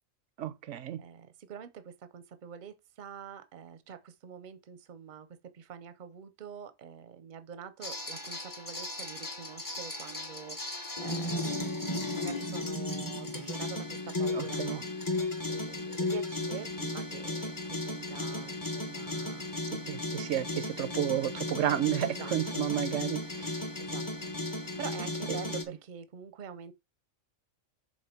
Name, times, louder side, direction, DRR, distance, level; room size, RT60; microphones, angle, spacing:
voice 1, 0.4-1.0 14.3-14.8 19.7-23.7 25.3-25.4, right 11 dB, 75° right, 1.0 m, -32 dB
voice 2, 1.0-5.3 5.5-11.8 12.1-14.8 15.5-19.5 22.0-22.7 23.8-24.3 24.8-26.7, right 8 dB, 45° right, 0.8 m, -46 dB
sound 1, 7.8-25.6, left 2 dB, 15° left, 1.1 m, -35 dB
7.5 x 3.0 x 5.8 m
omnidirectional pair, 1.3 m